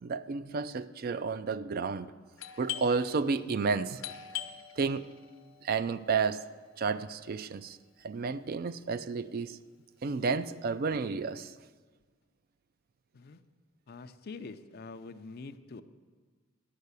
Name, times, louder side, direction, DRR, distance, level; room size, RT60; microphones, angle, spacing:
voice 1, 0.0-2.1 2.6-4.0 4.8-5.1 5.6-6.4 6.8-7.8 8.0-9.6 10.0-11.5, right 5 dB, 50° right, 0.4 m, -31 dB
Doorbell, 2.4-7.8, left 11 dB, 75° left, 0.8 m, -44 dB
voice 2, 13.9-15.8, left 3 dB, 50° left, 0.5 m, -45 dB
10.5 x 5.6 x 8.2 m
head